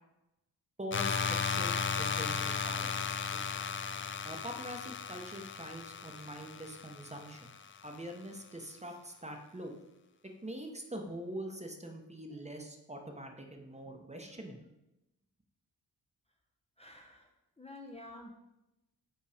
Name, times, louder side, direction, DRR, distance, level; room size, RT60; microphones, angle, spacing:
voice 1, 0.8-3.4 4.2-7.5 7.8-9.7 10.4-14.7, right 1 dB, 15° right, 3 dB, 1.0 m, -44 dB
sound 1, 0.9-7.7, left 6 dB, 30° left, 0.4 m, -35 dB
voice 2, 16.8-17.3 17.6-18.3, left 2 dB, 15° left, 1 dB, 0.8 m, -49 dB
5.6 x 3.8 x 4.9 m, 0.93 s
cardioid pair, 55°, 41 cm